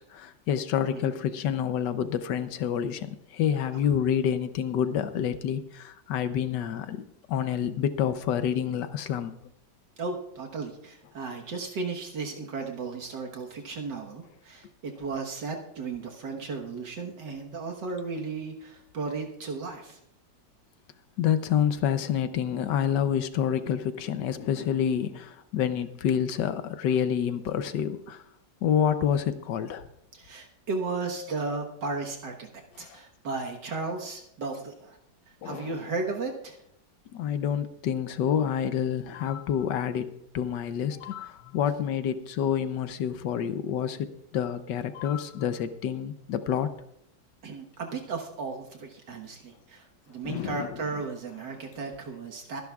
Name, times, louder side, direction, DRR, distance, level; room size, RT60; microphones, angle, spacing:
voice 1, 0.1-9.3 21.2-28.2 28.6-29.8 32.8-33.0 35.4-35.7 37.1-46.7 50.2-50.7, left 8 dB, 75° left, 11 dB, 1.4 m, -28 dB
voice 2, 10.0-20.0 30.1-35.0 35.4-36.6 47.4-52.6, right 4 dB, 75° right, 1 dB, 2.0 m, -35 dB
23.5 x 10.5 x 2.4 m, 0.76 s
omnidirectional pair, 1.9 m